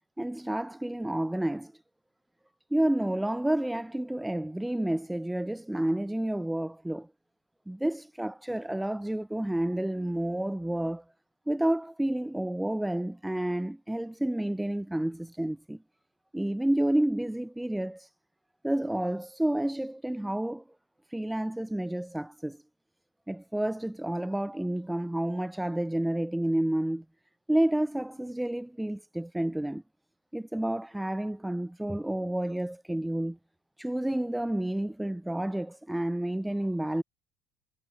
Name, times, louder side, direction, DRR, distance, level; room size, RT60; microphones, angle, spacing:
voice 1, 0.2-1.7 2.7-7.1 7.7-11.0 11.5-15.8 16.3-18.1 18.6-20.6 21.1-22.6 23.3-27.0 27.5-29.8 30.3-33.4 33.8-37.0, right 1 dB, 5° right, 2.8 m, -30 dB
cardioid pair, 120°, 0 cm